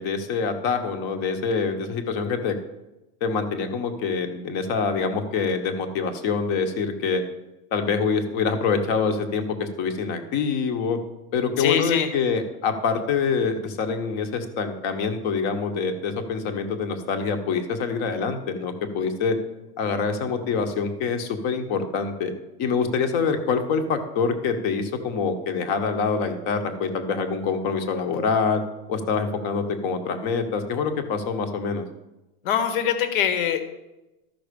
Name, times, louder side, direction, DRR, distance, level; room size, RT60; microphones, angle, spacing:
voice 1, 0.0-2.6 3.2-7.2 7.7-11.0 11.3-19.4 19.8-22.3 22.6-28.6 28.9-31.8, left 5 dB, 35° left, 6 dB, 1.1 m, -25 dB
voice 2, 11.6-12.1 32.4-33.7, left 9 dB, 65° left, 8 dB, 1.3 m, -23 dB
13.0 x 5.9 x 5.2 m, 1.0 s
supercardioid pair, 170°, 29 cm